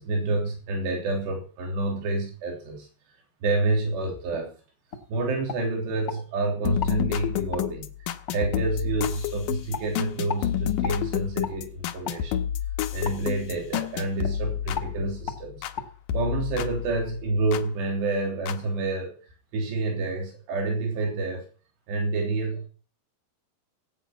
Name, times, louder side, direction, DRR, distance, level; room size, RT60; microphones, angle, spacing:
voice 1, 0.0-2.9 3.4-4.5 5.1-7.9 8.3-12.4 12.9-15.7 16.1-19.2 19.5-21.5 21.9-22.7, right 2 dB, 80° right, 1 dB, 5.4 m, -28 dB
sound 1, 4.3-4.5 4.9-5.1 5.5-6.2 6.8-7.0 7.5-7.7 8.3-8.4 9.0-9.2 9.7-9.9 10.3-10.5 10.8-11.0 11.4-11.6 12.0-12.2 13.0-13.2 13.7-13.9 14.2-14.4 14.7-14.9 15.3-15.4 15.8-15.9, left 6 dB, 40° left, 1.3 m, -34 dB
sound 2, 6.6-15.8 16.1-17.7 18.5-18.6, left 11 dB, 75° left, 2.1 m, -30 dB
17.0 x 9.1 x 6.0 m, 0.39 s
omnidirectional pair, 4.9 m